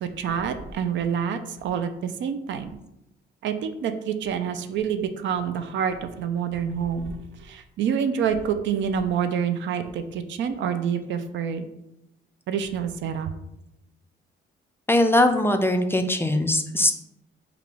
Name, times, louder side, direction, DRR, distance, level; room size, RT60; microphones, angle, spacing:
voice 1, 0.0-2.7 3.4-11.7 12.5-13.3, right 7 dB, 70° right, 9 dB, 0.4 m, -27 dB
voice 2, 14.9-16.9, left 1 dB, 10° left, 6 dB, 0.3 m, -21 dB
4.8 x 2.4 x 3.4 m, 0.88 s
cardioid pair, 90°, 20 cm